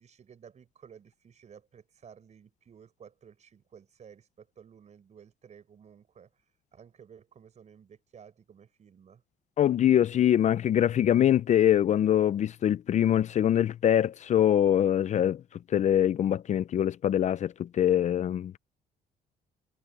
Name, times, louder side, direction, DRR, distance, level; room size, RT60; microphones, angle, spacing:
voice 1, 0.0-6.3 6.7-9.2, right 7 dB, 40° right, 6.8 m, -54 dB
voice 2, 9.6-15.4 15.7-18.6, left 10 dB, 45° left, 0.5 m, -24 dB
cardioid pair, 110°, 17 cm